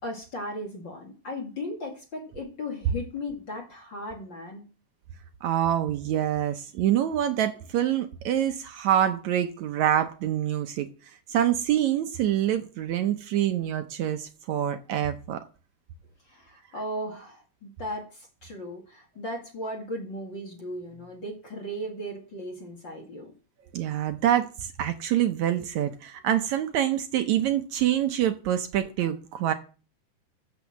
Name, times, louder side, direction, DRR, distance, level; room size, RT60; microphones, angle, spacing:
voice 1, 0.0-4.6 16.3-23.3, equal, 35° left, 1 dB, 2.5 m, -36 dB
voice 2, 5.4-10.9 11.3-15.4 23.7-29.5, right 11 dB, 70° right, 8 dB, 2.0 m, -26 dB
14.0 x 6.3 x 7.3 m, 0.37 s
omnidirectional pair, 3.8 m